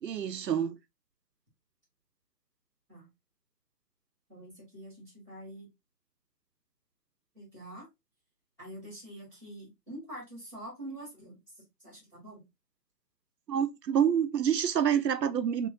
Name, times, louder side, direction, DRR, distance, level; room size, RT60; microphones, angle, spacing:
voice 1, 0.0-0.8 13.5-15.7, right 8 dB, 90° right, 0.7 m, -27 dB
voice 2, 4.3-5.7 7.3-7.9 8.6-12.5, right 1 dB, 5° left, 2.0 m, -46 dB
5.3 x 3.1 x 2.7 m
hypercardioid pair, 175°, 48 cm